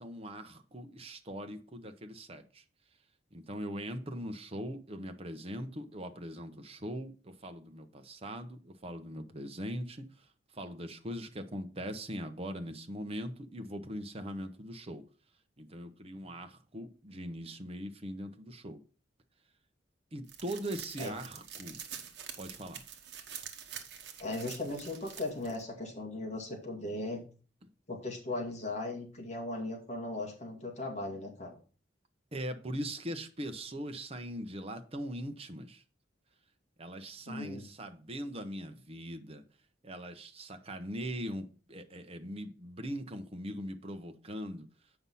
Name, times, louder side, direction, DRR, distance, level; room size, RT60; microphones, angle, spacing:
voice 1, 0.0-2.6 3.3-10.0 10.5-15.0 15.6-18.8 20.1-21.8 22.4-22.8 32.3-35.8 36.8-39.4 39.8-44.7, equal, 30° right, 0.9 m, -41 dB
sound 1, 20.3-25.6, right 8 dB, 60° right, 1.3 m, -46 dB
voice 2, 24.2-27.2 27.9-31.6 37.3-37.7, left 2 dB, 35° left, 2.2 m, -38 dB
7.9 x 5.7 x 5.5 m
head